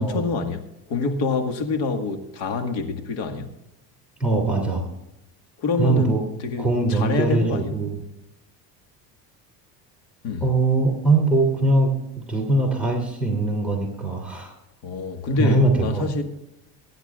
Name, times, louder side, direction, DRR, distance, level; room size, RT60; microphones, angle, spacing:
voice 1, 0.0-3.5 5.6-7.8 10.2-10.5 14.8-16.2, left 3 dB, 70° left, 6 dB, 1.9 m, -26 dB
voice 2, 4.2-4.8 5.8-6.2 6.6-8.0 10.4-14.5 15.4-16.2, right 2 dB, 5° right, -1 dB, 3.0 m, -21 dB
23.0 x 10.5 x 2.5 m, 0.90 s
cardioid pair, 125°, 41 cm